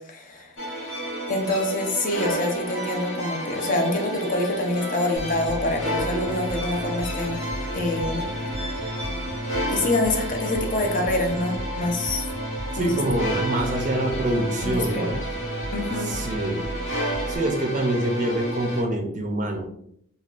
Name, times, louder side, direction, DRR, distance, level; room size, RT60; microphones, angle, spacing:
voice 1, 0.1-0.5 1.3-7.4 7.7-8.3 9.7-12.3 12.8-13.0 14.6-15.2 15.7-16.2, left 2 dB, 40° left, 2 dB, 0.5 m, -26 dB
sound 1, 0.6-18.8, right 1 dB, 70° left, 1.4 m, -31 dB
sound 2, 5.2-17.4, equal, 90° left, 0.8 m, -34 dB
voice 2, 12.7-15.1 16.0-16.6 17.3-19.7, right 1 dB, 35° right, 3 dB, 0.4 m, -25 dB
3.3 x 2.3 x 2.4 m, 0.71 s
head